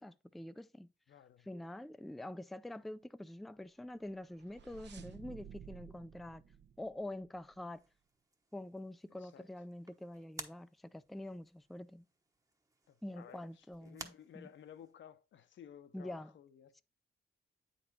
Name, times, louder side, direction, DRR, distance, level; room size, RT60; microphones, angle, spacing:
voice 1, 0.0-0.9 1.5-6.4 6.8-7.8 8.5-12.0 13.0-14.5 15.9-16.3, left 1 dB, ahead, 0.3 m, -46 dB
voice 2, 1.1-1.5 9.1-9.5 12.9-16.8, left 9 dB, 85° left, 0.8 m, -56 dB
sound 1, 4.0-7.6, right 8 dB, 70° right, 0.9 m, -54 dB
sound 2, 7.7-14.9, right 2 dB, 15° right, 1.0 m, -55 dB
8.9 x 4.2 x 4.1 m
wide cardioid pair, 115°, 19 cm